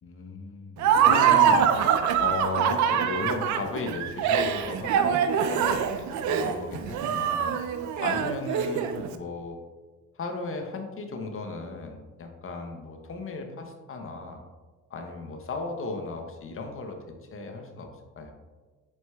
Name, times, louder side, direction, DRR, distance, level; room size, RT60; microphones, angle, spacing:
voice 1, 0.0-1.7 2.2-5.2 5.4-7.6 8.0-9.6 10.2-14.4 14.9-17.0 17.3-17.9 18.2-18.3, left 3 dB, 40° left, 4 dB, 0.7 m, -35 dB
Laughter, 0.8-9.1, right 8 dB, 60° right, 0.5 m, -24 dB
4.3 x 4.2 x 2.3 m, 1.3 s
supercardioid pair, 65°, 34 cm